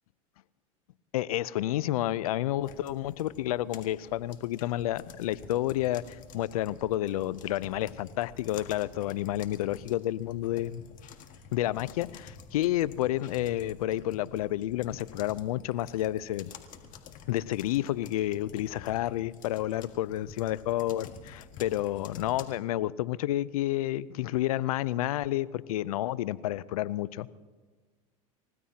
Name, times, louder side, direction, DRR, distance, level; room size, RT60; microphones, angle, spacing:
voice 1, 1.1-10.8 11.5-16.5 17.3-27.3, left 14 dB, 80° left, 20 dB, 0.5 m, -30 dB
sound 1, 2.6-22.5, left 7 dB, 45° left, 1.7 m, -50 dB
29.5 x 15.5 x 2.9 m, 1.4 s
hypercardioid pair, 95°, 18 cm